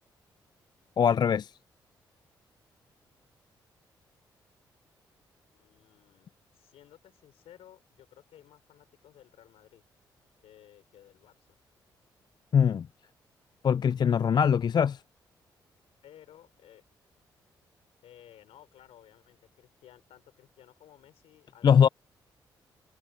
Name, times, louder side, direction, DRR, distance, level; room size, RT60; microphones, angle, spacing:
voice 1, 1.0-1.5 12.5-12.9 13.6-15.0 21.6-21.9, left 7 dB, 45° left, 0.4 m, -22 dB
voice 2, 5.5-9.8 10.4-11.6 16.0-16.8 18.0-21.9, left 11 dB, 70° left, 5.2 m, -56 dB
hypercardioid pair, 45°, 10 cm